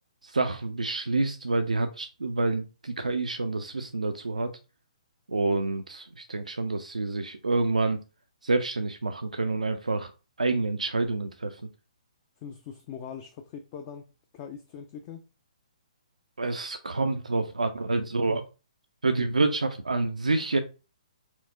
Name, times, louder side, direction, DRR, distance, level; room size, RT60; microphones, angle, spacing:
voice 1, 0.2-4.5 5.3-8.0 8.4-10.1 10.4-11.6 16.4-18.4 19.0-20.6, right 3 dB, 80° right, 0.4 m, -28 dB
voice 2, 12.4-15.3, left 7 dB, 30° left, 0.4 m, -42 dB
4.4 x 2.1 x 3.6 m
figure-of-eight pair, 130°, 4 cm